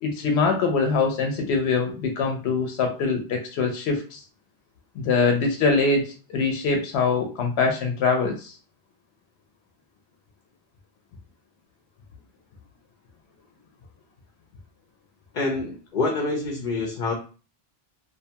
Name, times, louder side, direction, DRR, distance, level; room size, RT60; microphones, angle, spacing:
voice 1, 0.0-4.2 5.0-8.6, left 4 dB, 85° left, 3 dB, 0.8 m, -23 dB
voice 2, 15.3-17.1, left 3 dB, 60° left, 0 dB, 0.7 m, -26 dB
2.6 x 2.2 x 2.7 m, 0.35 s
omnidirectional pair, 1.1 m